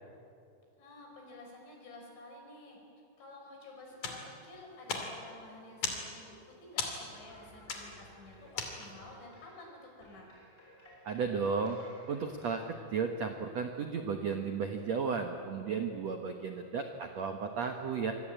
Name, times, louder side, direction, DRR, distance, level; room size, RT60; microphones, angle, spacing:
voice 1, 0.8-2.8 3.2-10.3, left 2 dB, 80° left, 0 dB, 8.1 m, -51 dB
sound 1, 3.9-9.2, left 5 dB, 50° left, 3.8 m, -40 dB
sound 2, 7.1-12.6, equal, 10° left, 6.5 m, -58 dB
voice 2, 11.0-11.8 12.1-18.1, right 5 dB, 80° right, 4 dB, 1.5 m, -34 dB
26.5 x 23.0 x 8.9 m, 2.5 s
omnidirectional pair, 5.2 m